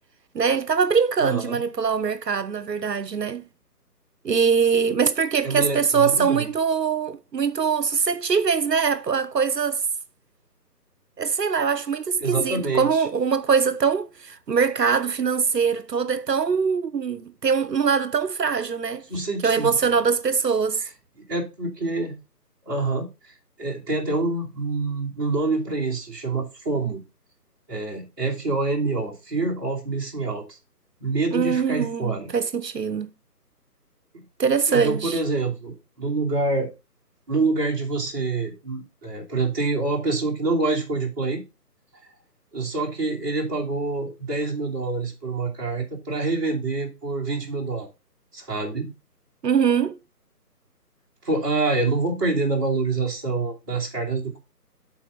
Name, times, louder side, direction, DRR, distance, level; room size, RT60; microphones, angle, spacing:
voice 1, 0.3-3.4 4.2-9.8 11.2-19.0 19.4-20.8 31.3-33.1 34.4-35.2 49.4-50.0, right 6 dB, 80° right, 0.7 m, -22 dB
voice 2, 1.2-1.6 5.4-6.5 12.2-13.0 19.1-20.0 21.3-22.2 22.7-23.1 23.6-27.0 27.7-30.6 31.0-32.3 34.1-34.2 34.7-36.7 37.3-41.4 42.5-47.9 48.3-48.9 51.2-54.4, right 3 dB, 15° right, 1.8 m, -26 dB
11.0 x 4.2 x 3.9 m
figure-of-eight pair, 150°, 48 cm